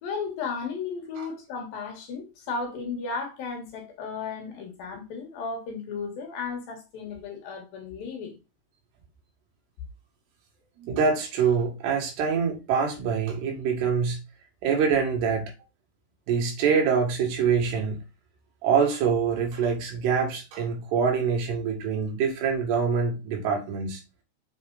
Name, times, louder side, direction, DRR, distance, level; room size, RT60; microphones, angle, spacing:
voice 1, 0.0-8.4, left 5 dB, 65° left, 3.0 m, -34 dB
voice 2, 10.8-14.2 14.6-15.5 16.3-18.0 18.6-24.0, right 6 dB, 75° right, 3.9 m, -25 dB
7.2 x 4.7 x 3.9 m
omnidirectional pair, 4.9 m